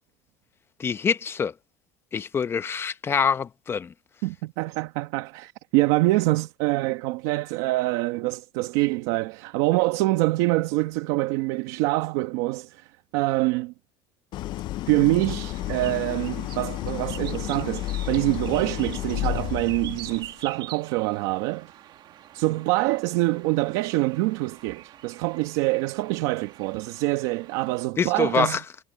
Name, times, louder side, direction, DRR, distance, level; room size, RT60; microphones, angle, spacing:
voice 1, 0.8-1.5 2.1-3.9 28.0-28.6, left 6 dB, 25° left, 0.9 m, -25 dB
voice 2, 4.2-13.7 14.9-21.7 22.3-28.6, right 20 dB, 80° right, 1.3 m, -25 dB
Idling, 14.3-20.4, left 15 dB, 45° left, 0.4 m, -31 dB
sound 1, 15.2-27.8, right 12 dB, 45° right, 1.8 m, -45 dB
cardioid pair, 145°, 10 cm